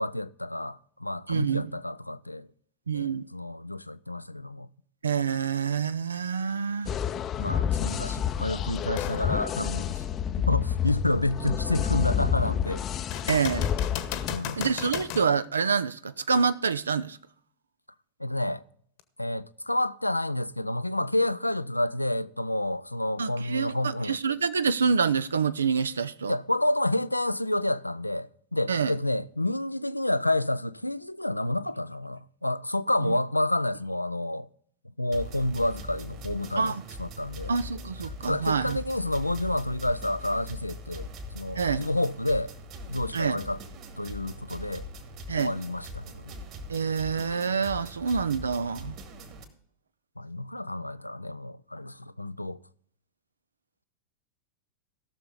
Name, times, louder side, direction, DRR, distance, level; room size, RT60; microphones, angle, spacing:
voice 1, 0.0-2.5 2.9-4.7 7.4-9.9 10.5-12.8 14.3-14.6 18.2-18.6 19.2-24.2 26.3-34.5 35.0-37.5 38.3-41.1 41.3-42.5 42.9-43.6 44.0-44.9 45.3-46.3 50.2-52.6, left 1 dB, 85° left, 0.4 m, -29 dB
voice 2, 1.3-1.7 2.9-3.3 5.0-6.9 13.3-13.7 14.6-17.2 23.2-23.7 24.0-26.4 28.7-28.9 33.0-33.1 36.6-36.8 37.5-38.8 41.6-41.9 43.1-43.4 45.3-45.5 46.7-49.0, right 6 dB, 70° right, 0.4 m, -27 dB
sound 1, 6.9-14.4, left 9 dB, 30° left, 0.5 m, -29 dB
sound 2, 9.0-9.2 9.8-9.9 13.1-15.3 19.0-19.1, left 10 dB, 45° left, 1.1 m, -35 dB
sound 3, 35.1-49.4, equal, 40° right, 2.1 m, -42 dB
17.0 x 6.7 x 3.9 m
figure-of-eight pair, 90°, 0 cm